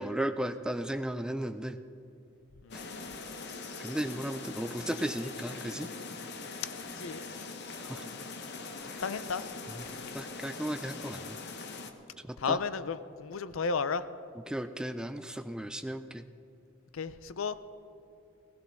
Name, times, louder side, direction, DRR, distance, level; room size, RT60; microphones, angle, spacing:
voice 1, 0.0-1.8 2.7-2.8 3.8-5.9 7.8-8.1 9.7-9.8 10.1-11.4 12.3-12.6 14.5-16.2, right 1 dB, 5° right, 10 dB, 0.3 m, -35 dB
voice 2, 2.6-3.0 7.0-7.2 9.0-9.4 10.0-10.1 12.4-14.0 16.9-17.6, left 5 dB, 75° left, 14 dB, 0.5 m, -33 dB
sound 1, 2.7-11.9, left 4 dB, 55° left, 0.9 m, -42 dB
17.0 x 16.5 x 3.6 m, 2.6 s
head